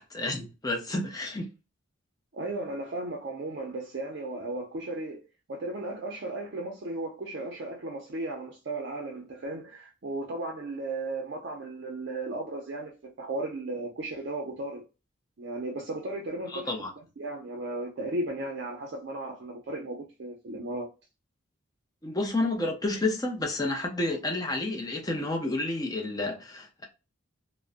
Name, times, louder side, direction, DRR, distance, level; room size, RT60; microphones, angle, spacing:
voice 1, 0.0-1.5 16.5-16.9 22.0-26.9, left 2 dB, 20° left, 0.5 m, -30 dB
voice 2, 2.3-5.2 5.5-14.8 15.4-16.7 17.2-20.9, right 2 dB, 55° right, 0.5 m, -35 dB
2.5 x 2.0 x 2.4 m
head